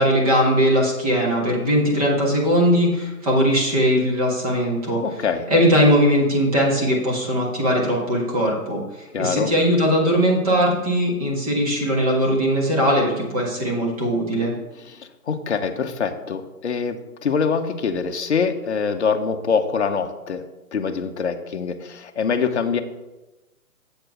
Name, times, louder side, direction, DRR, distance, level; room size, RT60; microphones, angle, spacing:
voice 1, 0.0-5.0 5.5-8.8 9.2-14.5, equal, 25° right, -3 dB, 1.6 m, -20 dB
voice 2, 5.0-5.5 9.1-9.5 14.9-20.4 20.7-22.8, left 5 dB, 45° left, 6 dB, 0.8 m, -24 dB
7.8 x 4.4 x 6.4 m, 1.0 s
hypercardioid pair, 170°, 45 cm